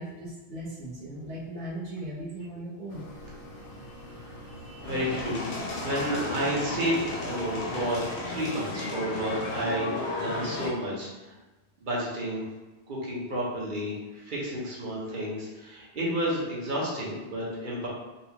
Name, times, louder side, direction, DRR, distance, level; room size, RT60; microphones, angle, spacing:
voice 1, 0.0-3.1, right 1 dB, 85° right, -8 dB, 1.5 m, -38 dB
sound 1, 2.9-8.1, left 1 dB, 55° left, 0.4 m, -45 dB
voice 2, 4.2-11.1 11.8-12.4 12.9-17.9, equal, 50° right, -5 dB, 1.0 m, -31 dB
sound 2, 4.8-10.7, left 2 dB, 80° left, 1.0 m, -34 dB
4.1 x 2.4 x 2.9 m, 1.1 s
omnidirectional pair, 1.2 m